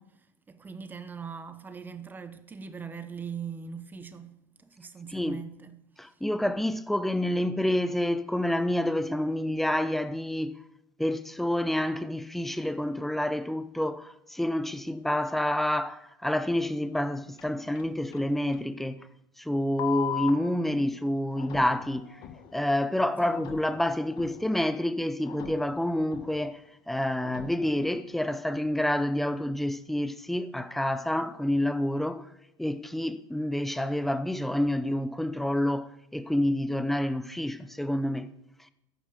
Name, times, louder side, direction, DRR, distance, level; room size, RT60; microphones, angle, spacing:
voice 1, 0.0-5.8 6.1-6.2 23.2-23.4, right 6 dB, 15° right, 1.1 m, -41 dB
voice 2, 5.1-5.4 6.0-10.5 11.0-19.1 19.4-22.1 22.5-26.6 26.9-32.2 32.6-38.3, left 1 dB, ahead, 0.7 m, -28 dB
sound 1, 17.4-18.2 18.5-18.6 19.8-20.3 21.3-22.6 23.3-24.6 25.2-26.5 27.2-28.0, left 10 dB, 45° left, 1.7 m, -39 dB
12.5 x 9.4 x 6.7 m
supercardioid pair, 130°, 11 cm